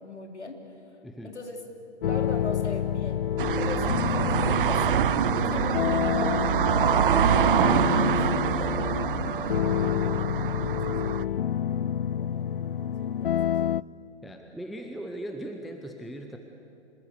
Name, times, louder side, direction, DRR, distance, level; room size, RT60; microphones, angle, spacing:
voice 1, 0.0-1.0 1.2-1.6 2.0-3.3 3.6-6.6 7.4-9.0 9.3-11.5 12.1-12.6 13.0-13.5, left 2 dB, 80° left, 3 dB, 3.8 m, -41 dB
voice 2, 1.0-1.3 14.2-16.4, right 1 dB, ahead, 4 dB, 0.6 m, -39 dB
sound 1, 2.0-13.8, left 10 dB, 55° left, 0.5 m, -28 dB
sound 2, 3.4-11.2, right 10 dB, 50° right, 0.5 m, -25 dB
26.0 x 21.0 x 8.3 m, 2.9 s
figure-of-eight pair, 125°, 34 cm